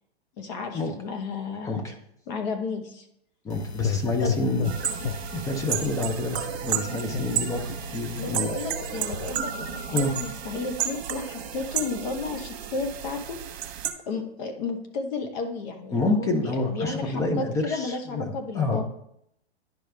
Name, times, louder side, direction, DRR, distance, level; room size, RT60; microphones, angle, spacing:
voice 1, 0.4-1.8 2.3-3.1 4.2-4.4 8.1-13.4 14.1-18.8, left 4 dB, 40° left, 6 dB, 1.1 m, -33 dB
voice 2, 1.6-1.9 3.4-5.0 5.3-8.6 9.9-10.1 15.9-18.9, left 2 dB, 10° left, 5 dB, 0.6 m, -28 dB
sound 1, 3.5-9.8, left 5 dB, 80° left, 0.8 m, -35 dB
sound 2, 4.6-13.9, right 9 dB, 70° right, 1.1 m, -32 dB
10.5 x 5.0 x 3.4 m, 0.74 s
hypercardioid pair, 145°, 32 cm